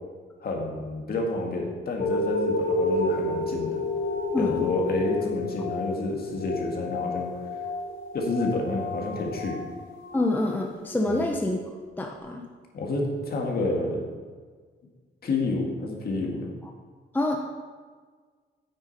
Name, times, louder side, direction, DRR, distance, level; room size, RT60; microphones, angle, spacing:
voice 1, 0.4-3.8 4.4-7.3 8.1-9.6 11.1-11.2 12.7-14.1 15.2-16.5, left 2 dB, 50° left, 0 dB, 1.9 m, -29 dB
sound 1, 2.0-10.9 11.5-11.6, left 2 dB, 75° left, 1.5 m, -30 dB
voice 2, 4.3-4.7 10.1-11.6 12.0-12.4 17.1-17.5, left 2 dB, 10° left, 1 dB, 0.7 m, -26 dB
9.0 x 8.5 x 4.2 m, 1.5 s
cardioid pair, 130°, 21 cm